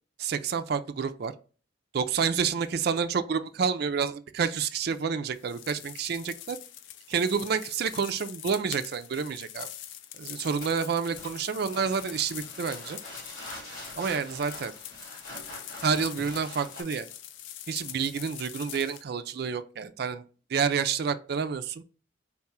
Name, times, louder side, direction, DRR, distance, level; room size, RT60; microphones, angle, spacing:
voice 1, 0.2-1.3 1.9-6.6 7.1-9.7 10.2-13.0 14.0-14.7 15.8-17.1 17.7-20.2 20.5-21.8, right 6 dB, 55° right, 0.4 m, -29 dB
sound 1, 5.3-19.0, left 11 dB, 70° left, 0.4 m, -44 dB
sound 2, 10.6-16.8, left 1 dB, 45° left, 2.0 m, -44 dB
3.8 x 2.3 x 4.2 m
head